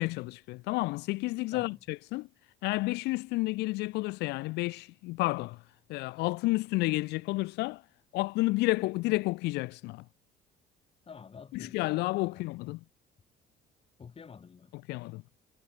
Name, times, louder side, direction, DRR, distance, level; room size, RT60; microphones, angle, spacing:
voice 1, 0.0-2.3 2.6-5.6 5.9-7.8 8.1-10.0 11.5-12.8 14.9-15.2, left 22 dB, 85° left, 0.5 m, -31 dB
voice 2, 1.5-1.8 11.0-12.5 14.0-14.7, left 6 dB, 35° left, 4.6 m, -49 dB
cardioid pair, 110°, 17 cm